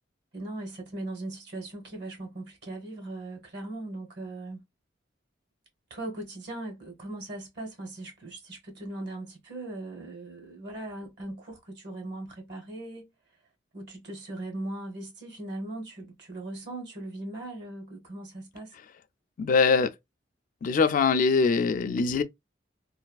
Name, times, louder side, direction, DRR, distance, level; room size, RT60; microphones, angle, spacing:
voice 1, 0.3-4.6 5.9-13.1 13.7-18.8, right 2 dB, 60° right, 1.1 m, -39 dB
voice 2, 19.4-19.9 20.6-22.2, left 4 dB, 45° left, 0.3 m, -23 dB
3.2 x 2.3 x 2.2 m
head